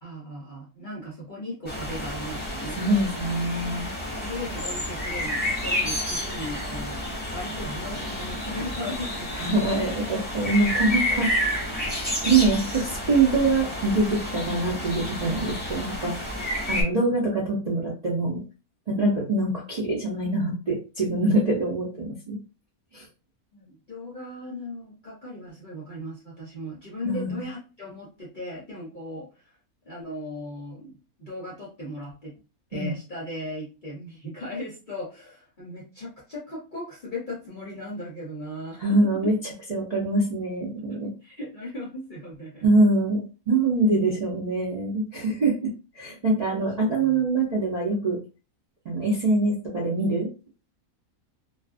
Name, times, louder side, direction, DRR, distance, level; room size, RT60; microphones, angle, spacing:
voice 1, 0.0-2.8 4.2-7.0 7.3-9.5 17.1-17.2 18.9-19.3 22.9-23.1 23.5-29.6 29.9-32.3 32.7-38.8 39.2-39.3 40.8-42.6 46.3-47.3, left 1 dB, 45° left, -6 dB, 0.8 m, -37 dB
sound 1, 1.7-16.8, left 1 dB, 5° left, 1.0 m, -30 dB
voice 2, 2.8-3.9 9.4-11.3 12.2-16.1 16.7-18.4 18.9-22.4 22.9-23.0 27.0-27.4 32.7-33.0 38.8-39.3 39.7-41.1 42.6-48.2 48.9-50.3, right 2 dB, 65° right, -4 dB, 0.4 m, -24 dB
2.4 x 2.4 x 2.4 m, 0.32 s
omnidirectional pair, 1.5 m